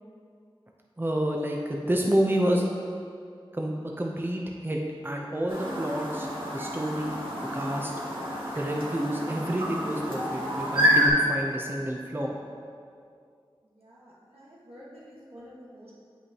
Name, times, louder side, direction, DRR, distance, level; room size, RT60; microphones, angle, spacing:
voice 1, 1.0-2.6 3.5-7.2 7.5-7.9 8.6-12.3, right 1 dB, 20° right, 0 dB, 0.7 m, -29 dB
Chirp tweet, 5.5-11.1, equal, 60° right, 1.6 m, -29 dB
voice 2, 13.8-15.9, equal, 85° right, -7 dB, 1.5 m, -49 dB
8.0 x 5.5 x 2.9 m, 2.3 s
wide cardioid pair, 45°, 10 cm